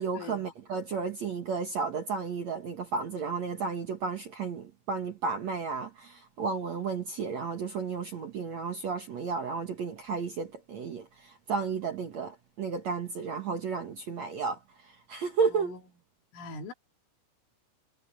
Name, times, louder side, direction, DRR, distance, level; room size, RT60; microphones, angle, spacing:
voice 1, 0.0-15.8, right 5 dB, 75° right, 1.6 m, -33 dB
voice 2, 15.5-15.8 16.3-16.7, left 3 dB, 80° left, 5.5 m, -42 dB
omnidirectional pair, 5.7 m